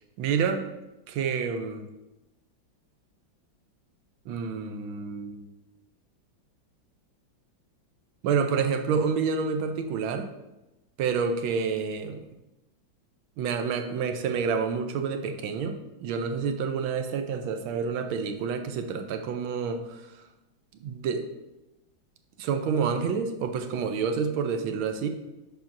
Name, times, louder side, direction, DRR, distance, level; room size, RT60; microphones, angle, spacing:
voice 1, 0.2-0.7 1.1-1.9 4.3-5.5 8.2-10.3 11.0-12.2 13.4-20.2 20.8-21.2 22.4-25.1, right 6 dB, 85° right, 6 dB, 1.5 m, -28 dB
10.5 x 4.9 x 2.6 m, 0.98 s
omnidirectional pair, 2.2 m